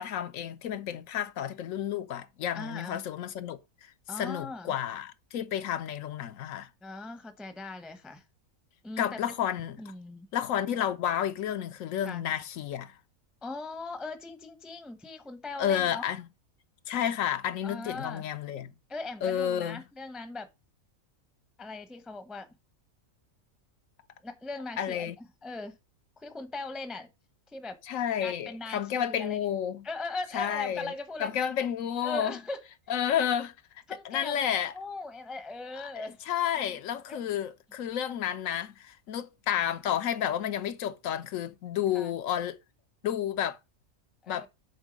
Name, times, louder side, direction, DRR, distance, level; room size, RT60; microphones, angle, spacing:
voice 1, 0.0-3.9 4.2-6.7 9.0-9.8 10.3-13.0 15.6-16.3 16.9-18.7 19.2-19.8 24.8-25.2 27.9-29.9 30.3-32.4 32.9-33.5 34.0-34.7 36.0-42.6 43.0-43.6 44.3-44.5, left 9 dB, 75° left, 1.0 m, -31 dB
voice 2, 2.5-3.0 4.1-4.7 6.8-8.2 8.8-9.4 9.8-10.3 12.0-12.2 13.4-16.1 17.6-18.2 18.9-20.5 21.6-22.5 24.2-25.1 25.4-25.8 26.2-27.1 27.5-27.8 28.2-29.4 29.8-31.3 32.0-32.6 33.9-34.5 34.7-36.2 36.6-36.8 37.1-37.2 41.9-42.1 44.2-44.5, left 3 dB, ahead, 0.6 m, -39 dB
8.1 x 3.6 x 5.1 m
omnidirectional pair, 1.4 m